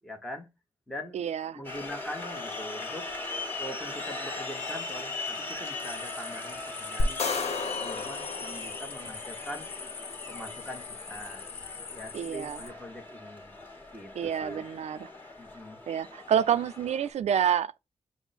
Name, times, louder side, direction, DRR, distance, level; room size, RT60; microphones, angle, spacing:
voice 1, 0.0-0.5 0.9-1.2 1.5-3.1 3.6-7.2 7.8-9.7 10.3-11.5 11.9-13.5 13.9-14.7 15.4-15.8, equal, ahead, 1.1 m, -42 dB
voice 2, 1.1-1.6 12.1-12.6 14.2-15.1 15.9-17.8, right 9 dB, 90° right, 0.4 m, -28 dB
sound 1, 1.6-17.1, left 3 dB, 20° left, 1.4 m, -39 dB
sound 2, 5.8-12.7, left 6 dB, 60° left, 0.4 m, -43 dB
sound 3, 7.0-9.4, left 3 dB, 80° left, 0.9 m, -32 dB
6.1 x 2.1 x 4.0 m
wide cardioid pair, 115°, 11 cm